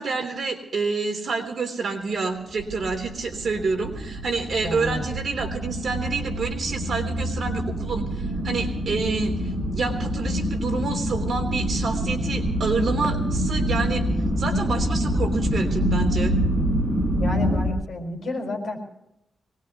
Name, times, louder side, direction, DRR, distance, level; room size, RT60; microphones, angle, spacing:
voice 1, 0.0-14.0 14.4-16.4, right 4 dB, 50° right, 3 dB, 3.3 m, -28 dB
sound 1, 2.4-17.7, left 1 dB, 10° right, 1.7 m, -27 dB
sound 2, 2.6-17.3, right 5 dB, 75° right, 1.4 m, -33 dB
voice 2, 4.6-5.0 17.2-18.8, left 1 dB, 55° left, 1 dB, 5.5 m, -30 dB
sound 3, 12.4-15.4 15.7-17.6, left 2 dB, 35° left, 5.7 m, -34 dB
23.0 x 20.0 x 3.0 m, 0.86 s
wide cardioid pair, 165°, 0 cm